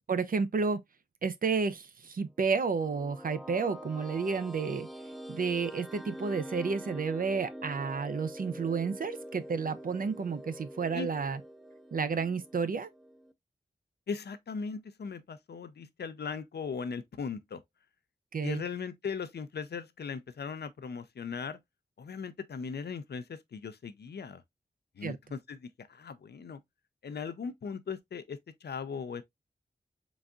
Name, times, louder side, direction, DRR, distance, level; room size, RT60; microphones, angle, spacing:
voice 1, 0.1-0.8 1.2-4.9 5.3-11.4 11.9-12.9 18.3-18.6 25.0-25.2, right 5 dB, 60° right, 0.5 m, -31 dB
sound 1, 2.6-13.3, equal, ahead, 0.4 m, -45 dB
voice 2, 14.1-17.6 18.4-21.6 22.0-24.4 25.0-26.6 27.0-29.2, left 5 dB, 80° left, 0.5 m, -38 dB
4.0 x 3.5 x 2.4 m
wide cardioid pair, 100°, 17 cm